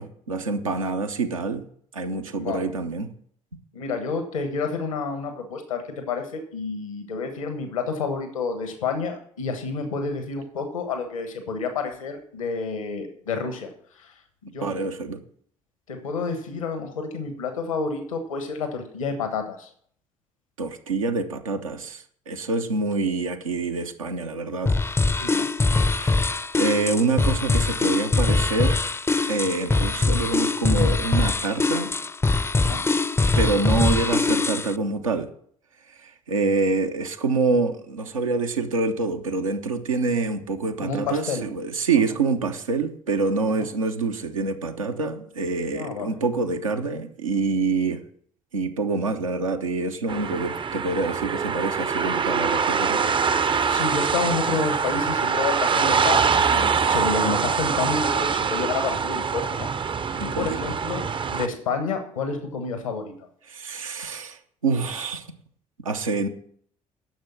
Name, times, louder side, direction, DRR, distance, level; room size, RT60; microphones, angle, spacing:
voice 1, 0.0-1.6 1.9-3.1 14.6-15.2 20.6-24.7 25.8-26.3 26.6-28.8 29.3-31.9 33.4-35.3 36.0-48.0 48.5-53.2 60.1-60.8 63.5-65.2 65.8-66.3, right 4 dB, 85° right, 5 dB, 0.9 m, -26 dB
voice 2, 2.4-2.7 3.7-13.7 13.9-14.1 14.4-14.9 15.9-19.7 25.2-25.5 32.5-32.8 40.8-41.4 43.6-43.7 45.7-46.2 53.7-59.7 60.2-63.3, left 4 dB, 80° left, 7 dB, 1.3 m, -29 dB
sound 1, 24.7-34.7, left 3 dB, 15° left, 0.5 m, -22 dB
sound 2, 50.1-61.5, right 6 dB, 30° right, 0.6 m, -24 dB
10.5 x 6.8 x 7.2 m, 0.62 s
figure-of-eight pair, 50°, 17 cm